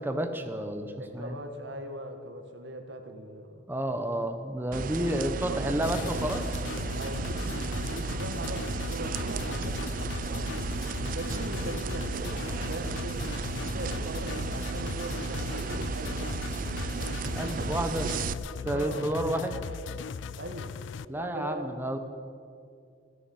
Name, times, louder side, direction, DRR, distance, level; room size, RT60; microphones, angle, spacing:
voice 1, 0.0-1.3 3.7-6.4 17.3-18.1 18.6-19.6 21.1-22.0, right 1 dB, 10° right, 6 dB, 0.9 m, -30 dB
voice 2, 1.0-3.6 5.1-5.9 7.0-10.8 11.1-16.4 16.9-17.2 18.6-19.1 20.4-20.7 21.1-21.9, right 1 dB, 70° right, 6 dB, 1.7 m, -40 dB
sound 1, 4.7-18.3, right 4 dB, 45° right, 0.4 m, -34 dB
sound 2, 5.8-21.1, left 6 dB, 75° left, 0.4 m, -38 dB
16.0 x 10.0 x 8.5 m, 2.4 s
head